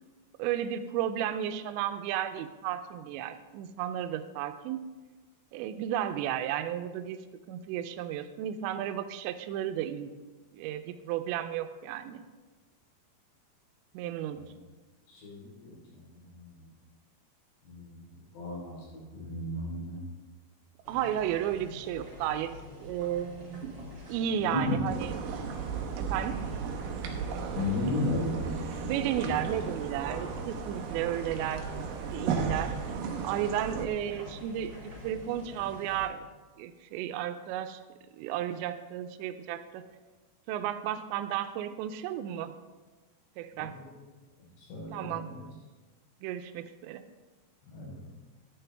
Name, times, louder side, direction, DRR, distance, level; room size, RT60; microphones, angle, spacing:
voice 1, 0.4-4.8 5.5-7.2 7.5-10.2 10.5-12.2 13.9-14.5 20.9-22.5 22.8-25.1 26.1-26.4 28.9-31.7 32.1-32.7 33.2-36.3 36.6-37.8 38.2-39.8 40.5-42.5 43.4-43.7 44.9-45.3 46.2-47.0, right 10 dB, 90° right, 9 dB, 2.9 m, -33 dB
voice 2, 15.1-16.7 17.6-20.0 24.4-24.8 27.5-29.0 29.3-29.5 43.5-44.0 44.4-45.5 47.7-48.1, left 1 dB, 75° left, -4 dB, 5.9 m, -35 dB
sound 1, 20.8-36.1, left 2 dB, 35° right, 4.6 m, -47 dB
sound 2, 24.9-33.9, right 6 dB, 70° right, 2.2 m, -35 dB
14.0 x 9.8 x 3.4 m, 1.3 s
omnidirectional pair, 5.0 m